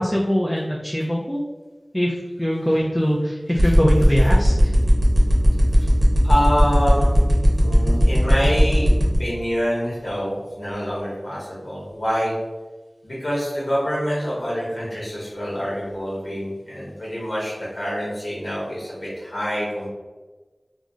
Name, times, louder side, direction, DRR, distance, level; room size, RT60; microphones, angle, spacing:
voice 1, 0.0-1.4 1.9-4.7, equal, 10° left, -3 dB, 0.4 m, -22 dB
sound 1, 3.6-9.2, equal, 60° right, 0.8 m, -18 dB
voice 2, 6.2-7.2 7.6-8.9 9.2-12.3 13.0-19.9, equal, 75° left, -6 dB, 0.9 m, -26 dB
2.4 x 2.0 x 3.7 m, 1.3 s
wide cardioid pair, 45°, 0 cm